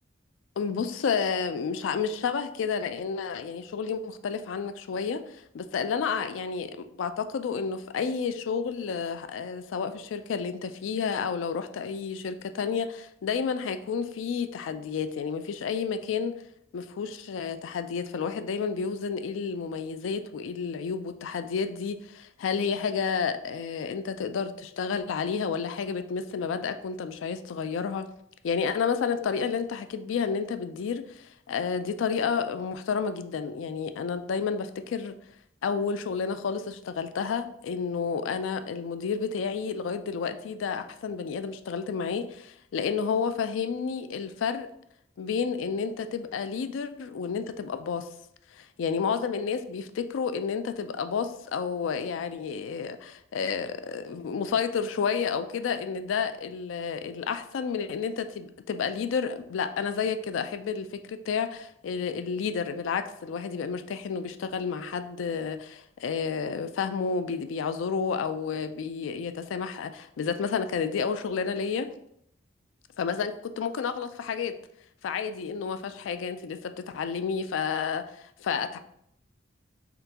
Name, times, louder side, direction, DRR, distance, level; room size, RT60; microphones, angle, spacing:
voice 1, 0.6-16.4 16.7-28.1 28.4-35.2 35.6-44.7 45.2-48.1 48.8-71.9 73.0-74.6 75.0-78.8, left 6 dB, 80° left, 10 dB, 0.3 m, -30 dB
3.7 x 3.4 x 2.8 m, 0.73 s
head